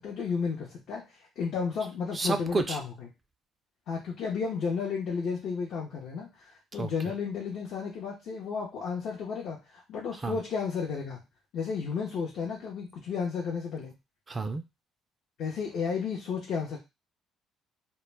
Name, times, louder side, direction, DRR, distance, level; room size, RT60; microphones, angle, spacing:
voice 1, 0.0-3.1 3.9-11.2 11.5-13.9 15.4-16.8, left 5 dB, 65° left, -1 dB, 0.6 m, -33 dB
voice 2, 2.1-2.8 6.8-6.9 10.2-10.4 14.3-14.6, right 3 dB, 30° right, 8 dB, 0.3 m, -30 dB
2.1 x 2.1 x 3.2 m, 0.24 s
cardioid pair, 90°, 0 cm